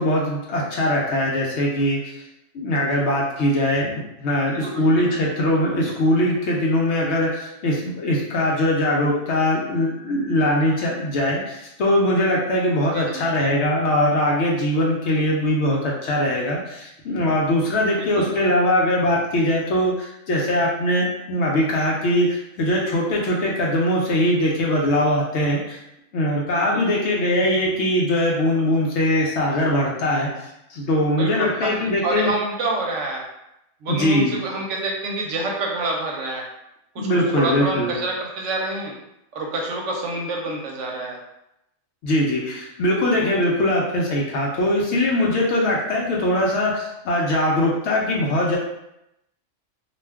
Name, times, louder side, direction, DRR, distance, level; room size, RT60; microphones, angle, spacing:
voice 1, 0.0-2.2 2.5-3.9 4.2-25.8 26.1-32.3 33.9-34.4 37.0-37.9 42.0-48.6, left 1 dB, 65° left, -2 dB, 0.8 m, -21 dB
voice 2, 4.4-5.1 12.9-13.2 17.9-18.3 26.5-26.9 31.1-31.7 32.0-33.2 33.8-36.4 36.9-38.9 39.3-41.2, right 2 dB, 70° right, -1 dB, 0.9 m, -27 dB
2.4 x 2.2 x 3.3 m, 0.85 s
omnidirectional pair, 1.4 m